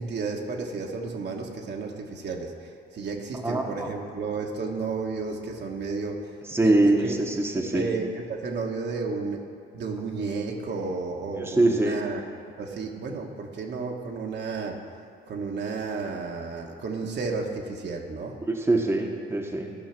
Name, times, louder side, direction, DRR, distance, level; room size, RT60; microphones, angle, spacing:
voice 1, 0.0-6.3 6.6-7.2 7.5-9.4 9.7-12.2 12.6-14.8 15.3-18.4, right 4 dB, 60° right, 1 dB, 1.4 m, -32 dB
voice 2, 3.4-3.9 6.5-7.8 11.4-12.0 18.5-19.7, right 2 dB, 10° right, 1 dB, 1.1 m, -23 dB
14.0 x 5.7 x 5.9 m, 2.3 s
cardioid pair, 90°, 20 cm